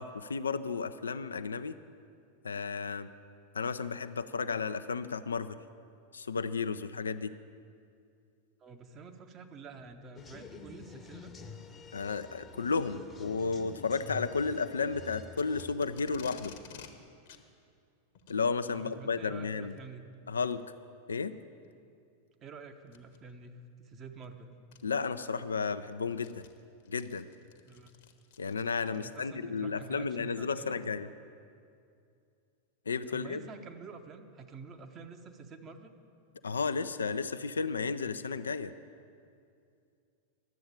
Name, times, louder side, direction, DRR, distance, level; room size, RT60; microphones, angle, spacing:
voice 1, 0.0-1.7 2.4-3.1 3.5-5.6 6.1-7.3 11.9-16.5 18.3-19.7 20.3-20.6 21.1-21.4 24.8-26.5 26.9-27.3 28.4-31.1 32.9-33.4 36.4-38.7, left 5 dB, 75° left, 12 dB, 0.4 m, -33 dB
voice 2, 8.6-11.3 18.7-20.1 22.4-24.6 27.6-27.9 29.0-30.8 33.1-35.9, right 5 dB, 30° right, 6 dB, 0.9 m, -48 dB
sound 1, 10.2-15.7, left 4 dB, 20° left, 0.9 m, -48 dB
Packing tape duct tape, 15.3-16.9 17.3-17.4 18.1-18.4 19.6-19.8 20.5-20.6 21.2-21.3 22.9-23.2 24.2-24.3 24.7-24.8 25.3-29.2, left 6 dB, 50° left, 1.0 m, -52 dB
11.5 x 7.9 x 9.0 m, 2.4 s
figure-of-eight pair, 90°, 0 cm